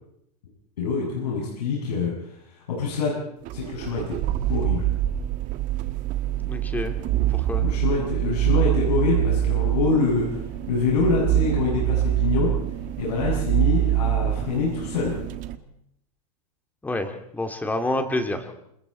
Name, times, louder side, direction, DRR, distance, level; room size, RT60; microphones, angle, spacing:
voice 1, 0.8-3.2 3.5-4.2 4.5-4.9 7.6-10.4 10.7-12.5 13.0-15.1, left 4 dB, 85° left, -4 dB, 7.6 m, -25 dB
sound 1, 3.4-15.5, right 13 dB, 40° right, 1.5 m, -25 dB
voice 2, 6.4-7.0 7.3-7.6 16.8-18.5, left 2 dB, 10° left, 6 dB, 2.6 m, -28 dB
28.0 x 21.5 x 4.5 m, 0.75 s
supercardioid pair, 130°, 20 cm